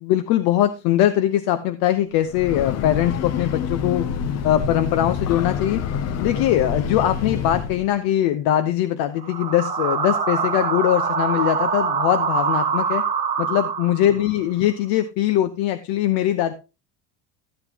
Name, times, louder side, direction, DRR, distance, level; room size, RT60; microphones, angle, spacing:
voice 1, 0.0-4.1 4.4-5.8 6.2-13.0 13.4-16.5, left 12 dB, 70° left, 9 dB, 0.9 m, -21 dB
Breathing / Train, 2.2-7.9, left 7 dB, 45° left, 0.7 m, -27 dB
sound 1, 9.2-14.3, right 6 dB, 20° right, 1.6 m, -24 dB
14.0 x 8.1 x 2.9 m, 0.30 s
cardioid pair, 130°, 36 cm